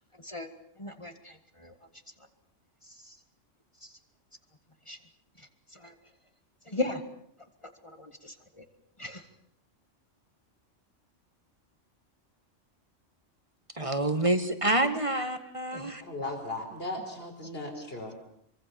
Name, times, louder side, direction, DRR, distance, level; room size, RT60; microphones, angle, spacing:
voice 1, 0.2-0.5 0.8-1.7 2.9-3.2 3.8-3.9 4.9-5.0 5.4-5.9 6.7-7.0 7.8-8.6 9.0-9.2 15.1-15.2 15.7-15.9 16.2-16.3, left 2 dB, 25° left, 6 dB, 2.0 m, -38 dB
voice 2, 13.8-16.0, right 1 dB, 25° right, 9 dB, 1.8 m, -27 dB
voice 3, 16.0-18.1, left 2 dB, 50° left, 3 dB, 5.0 m, -37 dB
25.0 x 24.0 x 7.1 m, 0.70 s
omnidirectional pair, 1.3 m